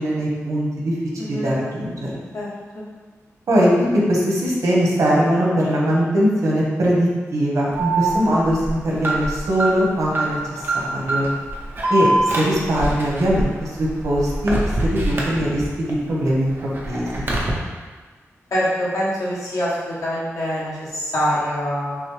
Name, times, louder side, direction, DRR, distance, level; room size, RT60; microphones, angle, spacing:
voice 1, 0.0-2.2 3.5-3.7 4.1-11.3 11.9-14.6 14.8-17.3, equal, 85° right, -4 dB, 1.0 m, -21 dB
Alarm, 7.7-15.9 16.3-17.5, right 2 dB, 40° right, 0.6 m, -24 dB
voice 2, 18.5-22.0, equal, 85° left, -8 dB, 1.2 m, -25 dB
5.9 x 2.0 x 3.1 m, 1.4 s
wide cardioid pair, 160°, 5 cm